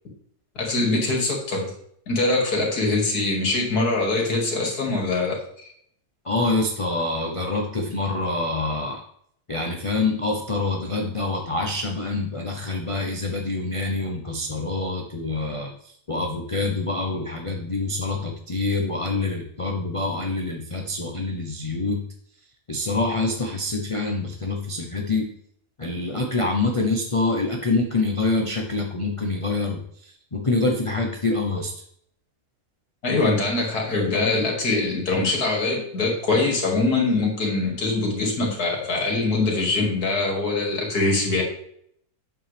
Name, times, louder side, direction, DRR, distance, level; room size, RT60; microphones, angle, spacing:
voice 1, 0.6-1.7 2.1-5.4 11.0-11.1 33.0-41.4, left 3 dB, 75° left, 0 dB, 2.7 m, -23 dB
voice 2, 6.2-9.0 9.5-22.0 22.7-25.3 25.8-31.7, left 3 dB, 25° left, 1 dB, 0.7 m, -26 dB
9.0 x 7.0 x 3.4 m, 0.68 s
omnidirectional pair, 1.7 m